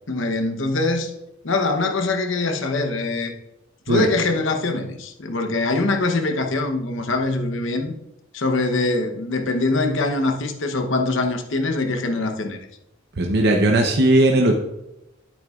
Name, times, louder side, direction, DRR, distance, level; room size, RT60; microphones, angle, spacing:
voice 1, 0.1-1.1 1.4-3.3 3.9-7.9 8.3-12.6, left 2 dB, 60° left, 5 dB, 0.9 m, -23 dB
voice 2, 13.2-14.5, right 1 dB, 50° right, 2 dB, 0.7 m, -17 dB
9.7 x 8.5 x 2.4 m, 0.91 s
head